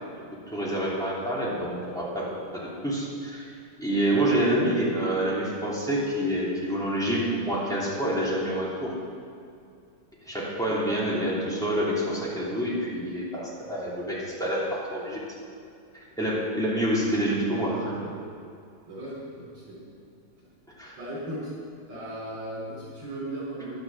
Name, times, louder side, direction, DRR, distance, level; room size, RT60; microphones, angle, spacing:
voice 1, 0.5-3.5 3.8-8.9 10.2-15.2 16.2-18.1 20.8-21.0, right 1 dB, ahead, -7 dB, 2.8 m, -27 dB
voice 2, 18.9-19.8 21.0-21.5 21.9-23.8, right 1 dB, 65° right, -8 dB, 5.1 m, -37 dB
11.0 x 9.1 x 7.4 m, 2.4 s
omnidirectional pair, 2.4 m